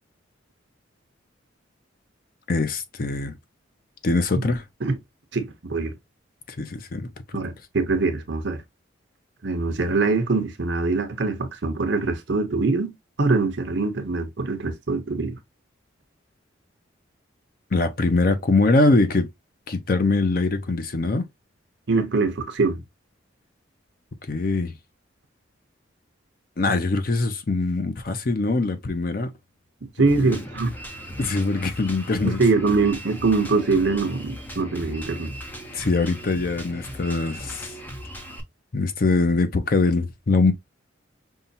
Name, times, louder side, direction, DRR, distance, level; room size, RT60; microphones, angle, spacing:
voice 1, 2.5-3.4 4.0-4.6 6.5-7.1 17.7-19.3 19.7-21.3 24.3-24.7 26.6-29.3 30.2-30.4 31.2-32.4 35.7-37.7 38.7-40.5, left 3 dB, 45° left, 0.5 m, -22 dB
voice 2, 5.3-6.0 7.3-8.6 9.4-15.4 21.9-22.8 30.0-30.7 32.2-35.3, right 3 dB, 65° right, 0.8 m, -23 dB
Drum kit, 30.1-38.4, equal, 10° left, 0.7 m, -38 dB
5.5 x 2.3 x 2.6 m
head